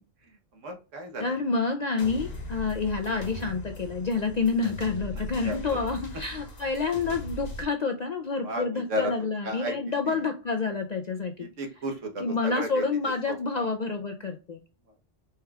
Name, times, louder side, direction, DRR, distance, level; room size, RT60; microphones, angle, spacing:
voice 1, 0.2-1.3 5.1-5.8 8.4-9.1 9.4-9.8 10.0-10.2 11.4-12.8 13.3-13.7, right 1 dB, 85° right, 3 dB, 1.4 m, -34 dB
voice 2, 1.2-11.5 12.2-14.6, left 4 dB, 60° left, 5 dB, 0.4 m, -28 dB
sound 1, 2.0-7.6, left 1 dB, 40° left, 0.9 m, -39 dB
4.3 x 2.3 x 3.3 m, 0.32 s
omnidirectional pair, 1.3 m